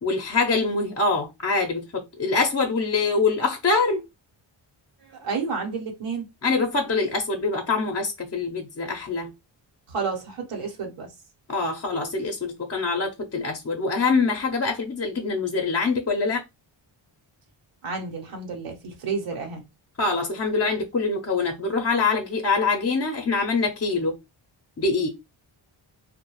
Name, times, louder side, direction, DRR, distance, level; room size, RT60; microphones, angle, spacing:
voice 1, 0.0-4.0 6.4-9.3 11.5-16.4 20.0-24.2 24.8-25.1, left 4 dB, 30° left, 0.5 m, -24 dB
voice 2, 5.1-6.3 9.9-11.1 17.8-19.6, right 5 dB, 90° right, 1.0 m, -30 dB
2.3 x 2.1 x 3.0 m
cardioid pair, 70°, 49 cm